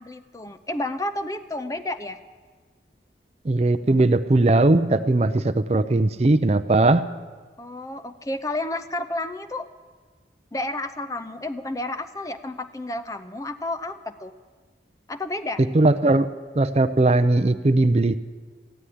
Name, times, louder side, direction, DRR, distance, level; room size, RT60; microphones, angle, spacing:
voice 1, 0.0-2.2 7.6-9.7 10.5-14.3 15.1-15.6, left 2 dB, 20° left, 10 dB, 0.6 m, -31 dB
voice 2, 3.5-7.0 15.7-16.3 16.6-18.2, right 2 dB, 35° right, 11 dB, 0.5 m, -19 dB
14.5 x 9.4 x 10.0 m, 1.4 s
head